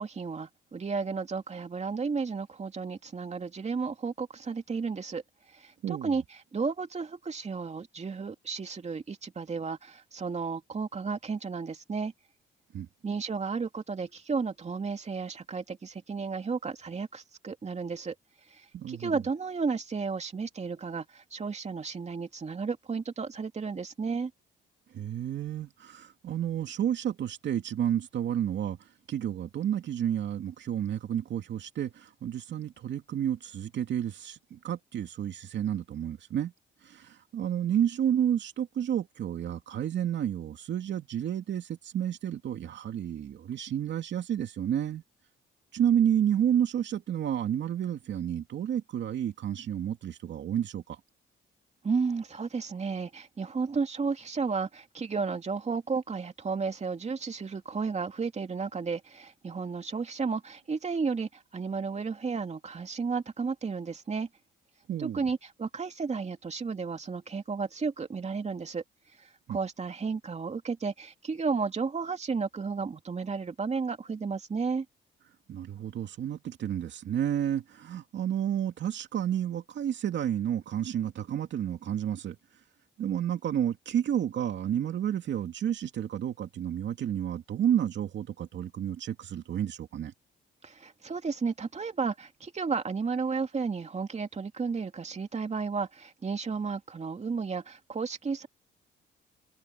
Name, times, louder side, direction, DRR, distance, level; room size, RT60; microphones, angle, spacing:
voice 1, 0.0-5.2 5.5-12.1 13.0-18.1 18.5-24.3 51.8-64.3 65.0-68.8 69.2-74.8 90.6-98.5, right 5 dB, 35° right, 2.8 m, -33 dB
voice 2, 5.8-6.2 12.7-12.9 18.7-19.1 24.9-28.8 29.1-36.5 36.8-45.0 45.7-51.0 64.9-65.2 69.5-69.6 75.5-82.4 83.0-90.1, right 10 dB, 65° right, 2.5 m, -30 dB
cardioid pair, 90°, 20 cm